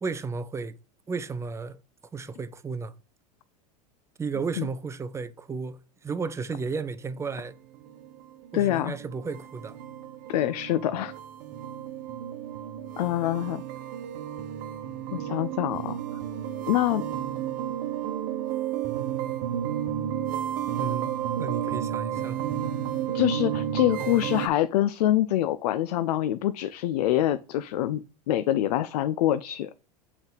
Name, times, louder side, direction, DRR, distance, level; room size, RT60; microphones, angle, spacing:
voice 1, 0.0-0.8 1.1-1.8 2.1-2.9 4.2-7.5 8.5-9.8 20.8-21.1 21.4-22.4, right 4 dB, 15° right, 0.5 m, -33 dB
sound 1, 7.5-24.5, right 10 dB, 55° right, 1.0 m, -32 dB
voice 2, 8.5-9.0 10.3-11.1 13.0-13.6 15.1-16.0 16.7-17.0 23.1-29.7, left 13 dB, 70° left, 0.4 m, -25 dB
6.9 x 3.6 x 3.9 m
hypercardioid pair, 95°, 21 cm